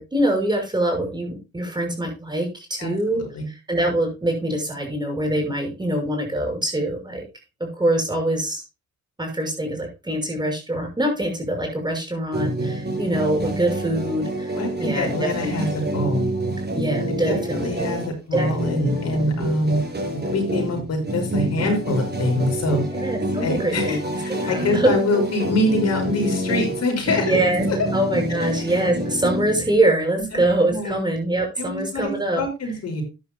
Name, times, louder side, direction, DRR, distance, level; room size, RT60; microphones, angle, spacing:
voice 1, 0.0-7.2 7.6-8.6 9.2-15.5 16.7-18.0 18.3-18.5 18.7-18.9 23.0-24.9 27.2-27.7 27.9-32.4, right 1 dB, 15° right, 3 dB, 6.1 m, -24 dB
voice 2, 2.8-3.5 14.5-15.7 15.9-16.3 17.3-18.0 18.3-22.8 23.4-27.4 27.8-27.9 28.3-28.5 30.3-30.4 30.7-31.0 31.6-33.0, left 1 dB, 55° left, 2 dB, 6.5 m, -25 dB
sound 1, 12.3-29.8, right 1 dB, 35° right, 6.3 m, -27 dB
13.5 x 10.5 x 2.3 m, 0.26 s
cardioid pair, 90°, 30 cm